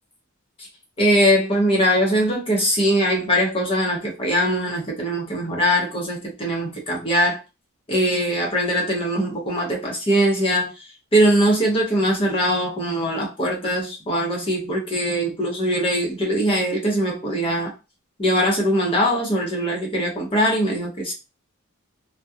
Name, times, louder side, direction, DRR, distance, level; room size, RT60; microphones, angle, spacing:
voice 1, 1.0-7.4 7.9-10.7 11.1-17.7 18.2-21.1, equal, 25° left, 0.8 m, -21 dB
2.3 x 2.2 x 2.7 m
head